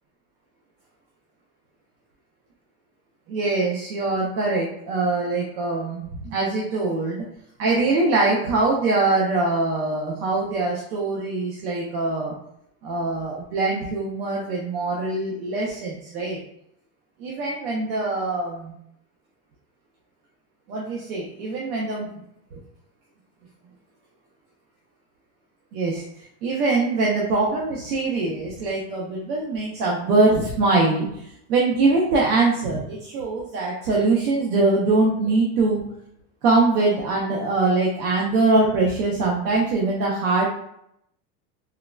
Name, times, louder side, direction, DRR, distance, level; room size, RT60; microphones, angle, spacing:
voice 1, 3.3-7.2 7.6-12.3 12.8-16.4 17.2-18.7 20.7-22.2 22.5-22.6 25.7-35.8 36.4-40.5, right 3 dB, 80° right, -3 dB, 0.8 m, -23 dB
3.7 x 2.2 x 2.2 m, 0.77 s
supercardioid pair, 145°, 44 cm